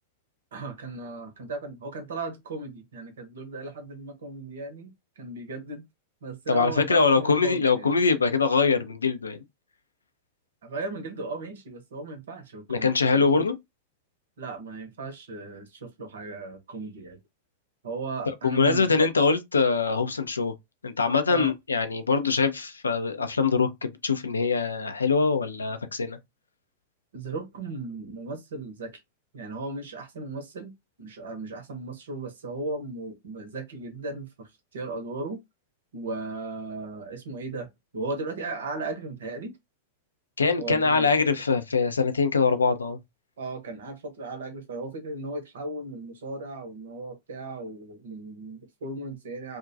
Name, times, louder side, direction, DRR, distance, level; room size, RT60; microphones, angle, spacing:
voice 1, 0.5-5.8 6.2-7.9 10.6-13.5 14.4-17.2 17.8-19.1 21.3-21.5 27.1-28.9 29.3-30.7 31.0-35.4 35.9-39.5 40.6-41.1 43.4-49.6, right 3 dB, 65° right, 0.8 m, -36 dB
voice 2, 6.5-9.4 12.7-13.6 18.4-20.5 20.8-26.2 40.4-43.0, left 4 dB, 80° left, 0.4 m, -23 dB
2.4 x 2.2 x 2.5 m
figure-of-eight pair, 95°, 0 cm